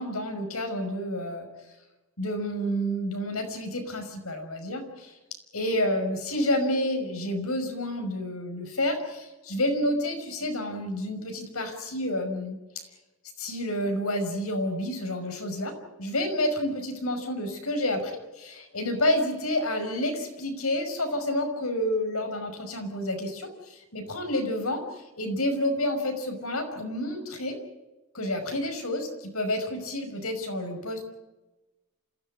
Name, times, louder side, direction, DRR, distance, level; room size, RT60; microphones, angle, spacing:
voice 1, 0.0-1.7 2.2-5.1 5.5-12.9 13.4-15.7 16.0-27.6 28.1-31.0, left 1 dB, 85° left, 5 dB, 5.6 m, -29 dB
27.5 x 16.0 x 9.8 m, 1.1 s
head